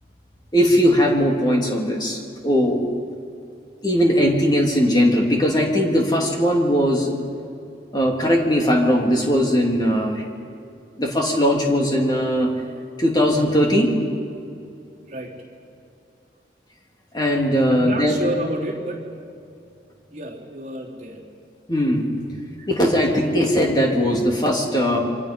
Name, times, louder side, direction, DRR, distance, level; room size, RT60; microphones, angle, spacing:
voice 1, 0.5-2.8 3.8-7.1 7.9-10.2 11.0-12.5 13.0-14.0 17.1-18.2 21.7-22.1 22.7-25.0, equal, 25° left, 0 dB, 2.6 m, -19 dB
voice 2, 17.7-19.0 20.1-21.2, right 1 dB, 35° right, -4 dB, 3.5 m, -30 dB
27.5 x 23.5 x 5.3 m, 2.5 s
head